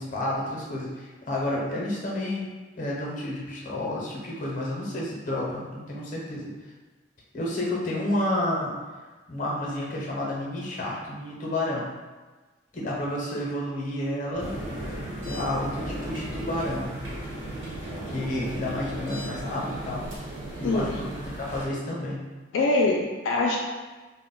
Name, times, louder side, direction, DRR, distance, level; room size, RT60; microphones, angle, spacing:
voice 1, 0.0-6.5 7.3-8.7 9.3-11.8 12.7-14.5 15.3-16.9 18.0-20.0 20.6-22.2, left 1 dB, 40° left, -4 dB, 0.6 m, -30 dB
sound 1, 14.3-21.2, right 1 dB, 40° right, 0.4 m, -39 dB
sound 2, 14.4-21.7, equal, 80° right, 1.0 m, -38 dB
voice 2, 22.5-23.6, left 2 dB, 85° left, -1 dB, 0.4 m, -23 dB
2.1 x 2.0 x 3.7 m, 1.3 s
head